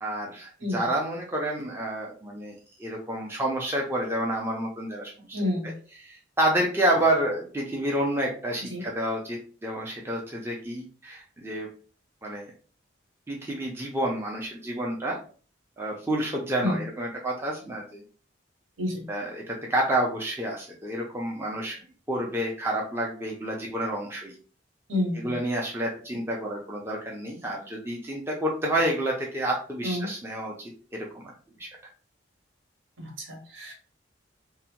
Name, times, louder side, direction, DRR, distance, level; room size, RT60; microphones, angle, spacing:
voice 1, 0.0-5.4 6.0-11.7 12.2-12.5 13.3-15.2 15.8-18.0 19.1-21.8 22.1-24.3 25.2-31.3 31.6-31.7, right 1 dB, 10° right, -1 dB, 0.4 m, -29 dB
voice 2, 5.3-5.7 8.7-8.8 16.6-16.8 18.8-19.0 24.9-25.3 29.8-30.1 33.0-33.7, left 1 dB, 80° right, 1 dB, 1.0 m, -29 dB
2.7 x 2.1 x 2.9 m, 0.40 s
head